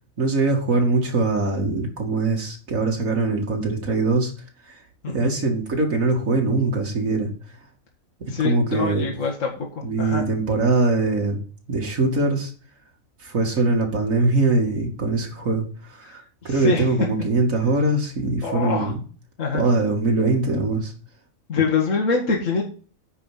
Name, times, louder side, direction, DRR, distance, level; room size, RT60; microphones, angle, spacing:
voice 1, 0.2-4.3 5.1-7.3 8.2-9.1 9.8-11.4 11.7-12.5 13.2-19.0 19.5-20.9, right 3 dB, 80° right, 1 dB, 2.6 m, -22 dB
voice 2, 8.3-9.5 10.0-10.3 16.5-16.9 18.4-18.9 19.4-19.6 21.5-22.6, left 4 dB, 70° left, -1 dB, 2.3 m, -24 dB
9.9 x 4.8 x 7.5 m, 0.38 s
omnidirectional pair, 1.4 m